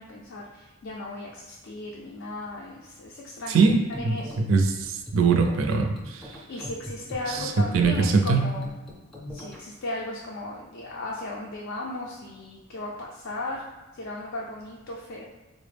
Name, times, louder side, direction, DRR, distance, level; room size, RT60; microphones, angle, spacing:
voice 1, 0.0-3.6 4.0-4.4 6.5-8.7 9.3-13.6 13.9-15.2, left 2 dB, 60° left, -2 dB, 0.4 m, -36 dB
sound 1, 3.5-9.6, left 1 dB, ahead, 0.5 m, -41 dB
voice 2, 3.5-3.8 4.0-6.2 7.3-8.5, right 4 dB, 65° right, 3 dB, 0.4 m, -22 dB
4.1 x 2.0 x 3.3 m, 1.2 s
head